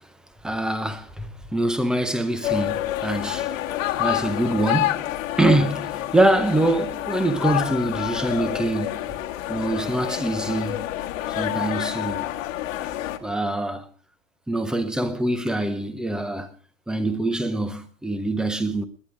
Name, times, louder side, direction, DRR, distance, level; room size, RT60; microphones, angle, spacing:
voice 1, 0.4-5.1 5.4-9.0 9.5-10.9 11.3-12.2 13.2-13.9 14.5-16.5 16.9-18.8, right 1 dB, ahead, 0.6 m, -24 dB
sound 1, 2.4-13.2, left 14 dB, 85° left, 1.6 m, -28 dB
19.5 x 10.5 x 5.0 m
supercardioid pair, 170°, 39 cm